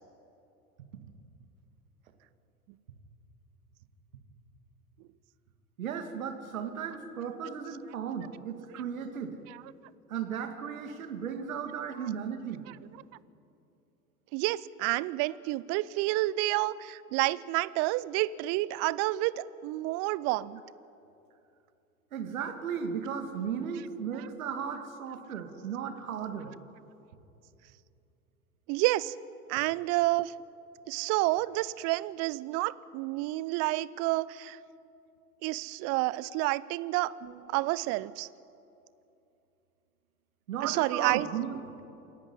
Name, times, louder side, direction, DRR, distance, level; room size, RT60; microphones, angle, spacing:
voice 1, 5.8-9.3 10.1-12.6 22.1-26.5 37.2-37.6 40.5-41.5, right 7 dB, 70° right, 7 dB, 2.3 m, -35 dB
voice 2, 14.3-20.6 28.7-29.1 29.5-30.3 30.9-34.6 35.4-37.2 37.5-38.3 40.6-41.3 41.5-41.6, right 19 dB, 35° right, 19 dB, 0.6 m, -29 dB
27.0 x 11.0 x 9.8 m, 2.8 s
figure-of-eight pair, 80°, 43 cm